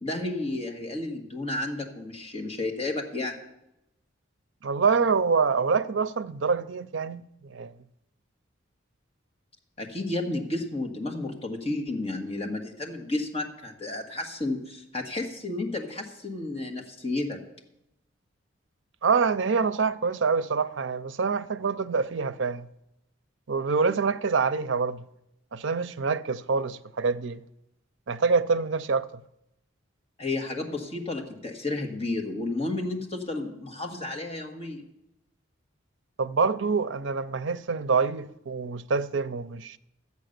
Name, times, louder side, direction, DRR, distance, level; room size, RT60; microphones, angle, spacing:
voice 1, 0.0-3.4 9.8-17.4 30.2-34.9, left 2 dB, 30° left, 1.6 m, -32 dB
voice 2, 4.6-7.7 19.0-22.7 23.5-25.0 25.5-27.4 28.1-29.1 36.2-39.8, right 5 dB, 70° right, 0.5 m, -26 dB
12.5 x 8.3 x 6.6 m
head